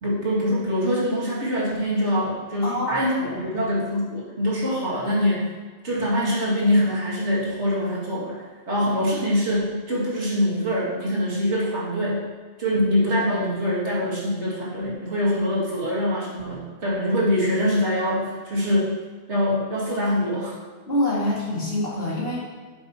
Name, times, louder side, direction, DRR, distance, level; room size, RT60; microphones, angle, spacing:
voice 1, 0.0-5.5 5.8-8.4 8.7-12.2 12.6-19.0 19.3-20.6, equal, 75° right, -7 dB, 2.6 m, -24 dB
voice 2, 2.6-3.5 20.9-22.4, left 1 dB, 55° left, -7 dB, 2.6 m, -26 dB
9.4 x 7.9 x 3.0 m, 1.4 s
omnidirectional pair, 1.2 m